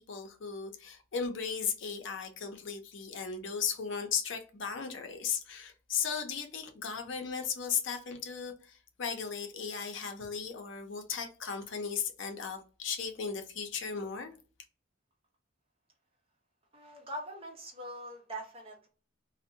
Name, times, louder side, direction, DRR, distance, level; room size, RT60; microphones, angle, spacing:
voice 1, 0.0-14.3, left 6 dB, 65° left, 0.5 m, -36 dB
voice 2, 16.7-18.9, right 1 dB, 30° right, 0.8 m, -42 dB
2.6 x 2.1 x 2.6 m
head